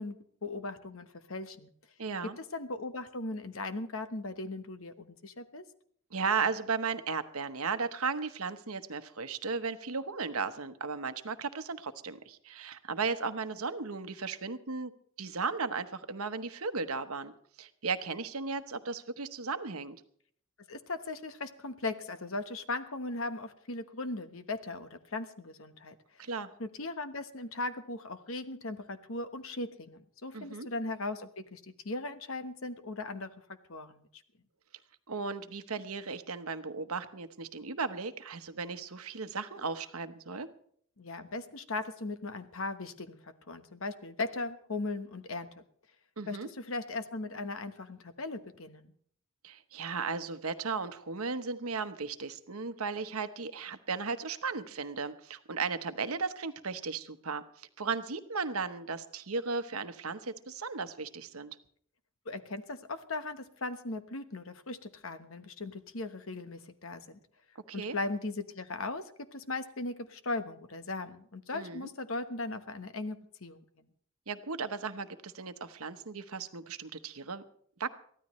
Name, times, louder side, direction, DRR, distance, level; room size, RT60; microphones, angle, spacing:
voice 1, 0.0-1.7 2.5-5.6 20.7-26.3 26.6-33.3 33.7-34.1 41.0-45.5 46.3-48.9 62.3-67.2 67.7-73.6, left 2 dB, 65° left, 11 dB, 1.1 m, -38 dB
voice 2, 2.0-2.4 6.1-14.9 15.2-17.3 17.6-20.0 26.2-26.5 30.3-30.7 35.1-40.5 46.2-46.5 49.4-61.6 67.5-68.0 71.5-71.9 74.3-77.4 77.8-77.9, right 4 dB, 80° right, 11 dB, 1.0 m, -35 dB
22.5 x 15.0 x 3.1 m, 0.62 s
head